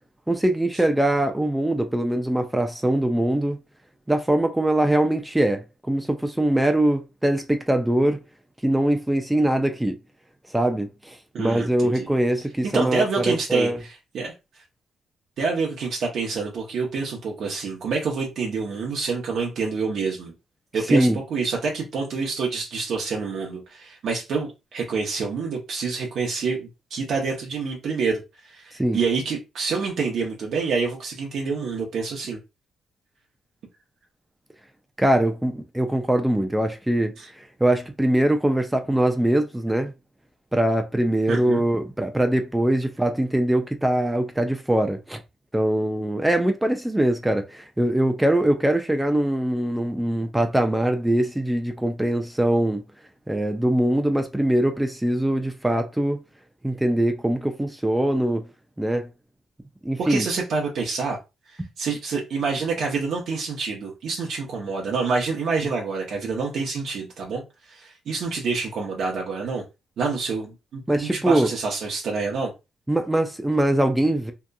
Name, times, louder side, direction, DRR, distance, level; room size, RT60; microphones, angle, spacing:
voice 1, 0.3-3.6 4.1-8.2 8.6-10.0 10.5-13.8 20.9-21.2 28.8-29.0 35.0-39.9 40.5-45.2 45.5-52.8 53.3-56.2 56.6-58.5 58.8-59.1 59.8-60.3 70.9-71.5 72.9-74.3, right 1 dB, 10° right, 0.4 m, -22 dB
voice 2, 11.3-12.1 12.7-14.6 15.4-20.3 20.7-32.4 37.2-37.3 41.3-41.6 60.0-61.2 61.5-69.6 70.0-72.5, right 4 dB, 65° right, 0.7 m, -27 dB
2.8 x 2.4 x 2.2 m
cardioid pair, 90°, 0 cm